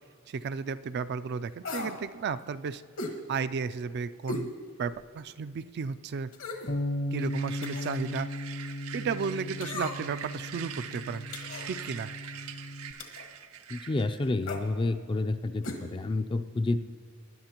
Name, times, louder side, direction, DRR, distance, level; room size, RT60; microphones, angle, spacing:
voice 1, 0.3-2.8 3.3-4.5 4.8-6.3 7.1-8.3 8.6-11.3 11.7-12.1, right 5 dB, 50° right, 12 dB, 0.3 m, -33 dB
sound 1, 1.6-2.0 3.0-3.2 4.3-4.5 5.0-5.1 6.3-6.7 7.6-8.0 9.6-10.2 11.3-11.7 13.0-13.3 14.4-14.7 15.6-15.8 16.1-16.2, left 2 dB, 70° left, 1.4 m, -37 dB
Bass guitar, 6.7-12.9, left 1 dB, 55° left, 0.7 m, -36 dB
sound 2, 7.2-14.3, right 8 dB, 90° right, 0.7 m, -44 dB
voice 2, 13.7-16.8, left 2 dB, 25° left, 10 dB, 0.4 m, -29 dB
19.5 x 11.0 x 2.9 m, 2.2 s
head